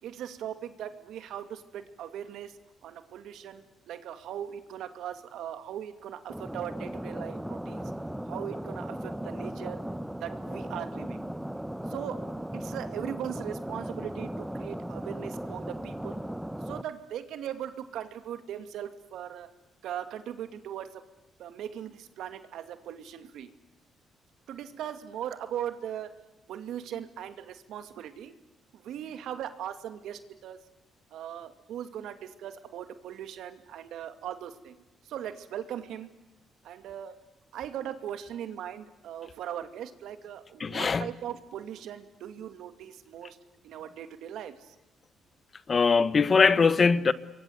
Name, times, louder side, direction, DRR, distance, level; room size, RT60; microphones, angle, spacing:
voice 1, 0.0-2.6 2.8-7.9 8.3-9.8 10.2-11.2 11.9-16.2 16.7-19.5 19.8-21.1 21.4-23.5 24.5-26.1 26.5-28.3 28.7-30.7 31.1-34.8 35.0-36.1 36.6-37.2 37.5-43.4 43.6-44.7, right 10 dB, 80° right, 2.4 m, -39 dB
sound 1, 6.3-16.8, right 1 dB, 5° right, 1.1 m, -37 dB
voice 2, 40.6-41.1 45.7-47.1, left 5 dB, 40° left, 1.3 m, -21 dB
28.0 x 23.5 x 8.2 m
cardioid pair, 90°, 0 cm